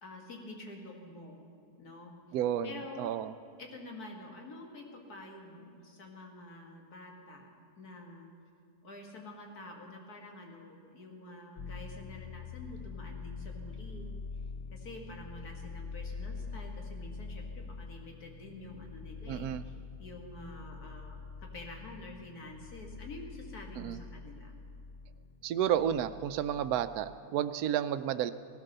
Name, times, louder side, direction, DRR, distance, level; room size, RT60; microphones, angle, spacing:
voice 1, 0.0-1.4 1.8-2.1 2.6-3.1 3.6-7.5 7.8-8.3 8.8-14.2 14.7-19.7 20.0-21.2 21.5-24.5, left 2 dB, 85° left, 1 dB, 2.5 m, -48 dB
voice 2, 2.3-3.3 19.3-19.6 23.8-24.0 25.4-28.3, right 10 dB, 85° right, 11 dB, 1.1 m, -31 dB
sound 1, 11.6-27.2, left 5 dB, 60° left, 0.7 m, -45 dB
17.0 x 12.5 x 6.7 m, 2.5 s
omnidirectional pair, 1.6 m